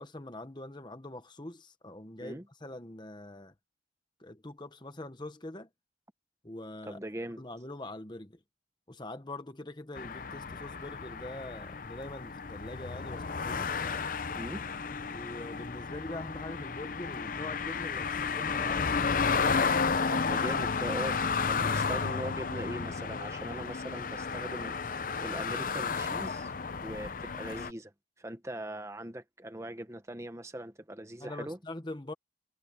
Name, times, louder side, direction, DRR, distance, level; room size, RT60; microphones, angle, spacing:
voice 1, 0.0-3.5 4.2-5.7 6.4-7.0 7.4-8.4 8.9-13.7 15.1-18.9 23.8-24.0 31.2-32.1, left 1 dB, 25° left, 1.2 m, -43 dB
voice 2, 6.9-7.4 14.3-14.6 20.1-21.2 21.4-26.5 26.8-27.9 28.2-31.6, right 1 dB, 15° right, 1.2 m, -40 dB
sound 1, 10.0-27.7, left 5 dB, 45° left, 0.6 m, -32 dB
head